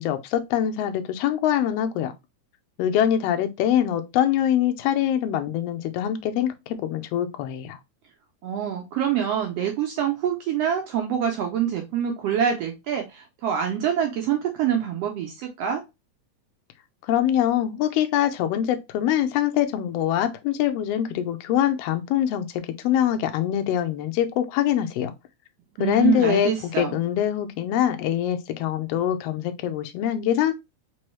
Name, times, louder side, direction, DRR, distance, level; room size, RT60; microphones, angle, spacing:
voice 1, 0.0-2.1 2.8-7.8 17.0-22.5 22.8-25.1 25.8-30.5, left 10 dB, 80° left, 1.4 m, -24 dB
voice 2, 8.4-15.8 25.8-27.0, right 9 dB, 80° right, 1.5 m, -25 dB
4.5 x 3.0 x 3.0 m
omnidirectional pair, 3.5 m